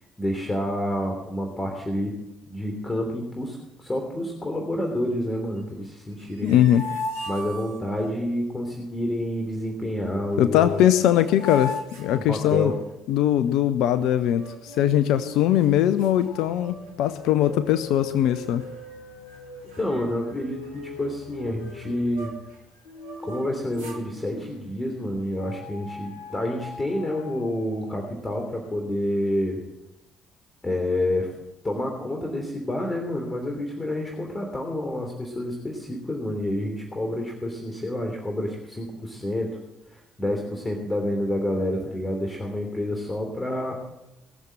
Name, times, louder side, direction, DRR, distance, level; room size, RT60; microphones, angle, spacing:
voice 1, 0.2-2.1 2.5-6.6 7.3-10.8 12.2-12.7 19.7-22.3 23.2-29.6 30.6-31.3 31.6-39.5 39.9-43.8, left 1 dB, 20° left, 2 dB, 3.2 m, -28 dB
sound 1, 6.1-8.2 10.3-10.4 10.7-12.9 14.3-15.1 15.6-15.7 16.0-17.1 17.4-17.7 18.3-19.0 19.3-19.4 19.7-22.6 23.0-24.1, left 2 dB, 85° right, 2.1 m, -38 dB
voice 2, 6.4-6.9 10.4-12.7 13.1-18.6, left 11 dB, 70° left, 12 dB, 0.6 m, -21 dB
sound 2, 14.6-24.9 25.4-28.1, left 3 dB, 85° left, 1.2 m, -43 dB
20.5 x 7.4 x 7.7 m, 0.92 s
hypercardioid pair, 50°, 0 cm